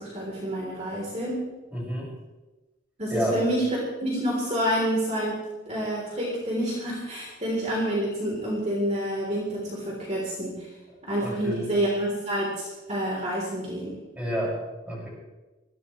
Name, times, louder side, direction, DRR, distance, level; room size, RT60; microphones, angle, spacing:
voice 1, 0.0-1.4 3.0-3.7 4.0-5.4 5.7-10.7 11.0-13.9, equal, 35° right, -4 dB, 3.9 m, -28 dB
voice 2, 1.7-2.1 3.1-3.4 11.2-11.7 14.1-15.1, equal, 5° right, -5 dB, 6.6 m, -29 dB
22.0 x 16.5 x 3.3 m, 1.1 s
head